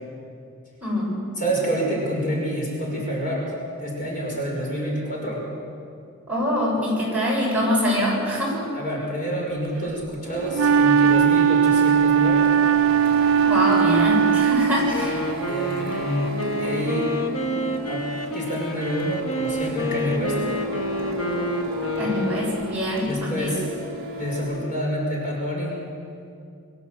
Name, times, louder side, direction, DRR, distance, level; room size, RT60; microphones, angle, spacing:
voice 1, 0.8-1.1 6.3-8.6 13.5-15.3 22.0-23.6, equal, 5° right, -6 dB, 7.1 m, -24 dB
voice 2, 1.4-5.4 8.7-12.5 15.5-17.1 17.9-20.4 23.0-23.6 24.1-25.8, equal, 40° left, -3 dB, 6.1 m, -28 dB
Printer, 10.2-24.4, equal, 50° right, 7.2 m, -33 dB
Wind instrument woodwind instrument, 10.5-15.0, right 7 dB, 80° right, 0.6 m, -18 dB
Wind instrument woodwind instrument 2, 14.8-22.7, equal, 75° left, 1.7 m, -29 dB
25.0 x 15.5 x 8.0 m, 2.4 s
head